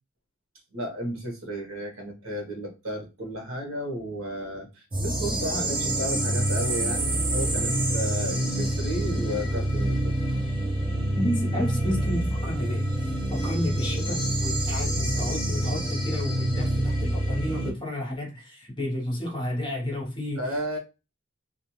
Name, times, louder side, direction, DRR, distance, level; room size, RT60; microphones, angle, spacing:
voice 1, 0.7-10.1 20.3-20.8, equal, 80° right, 1.1 m, -33 dB
sound 1, 4.9-17.7, right 1 dB, 25° right, 1.0 m, -27 dB
voice 2, 11.2-12.9 13.3-20.4, left 1 dB, 20° left, 0.8 m, -31 dB
2.6 x 2.3 x 2.9 m
head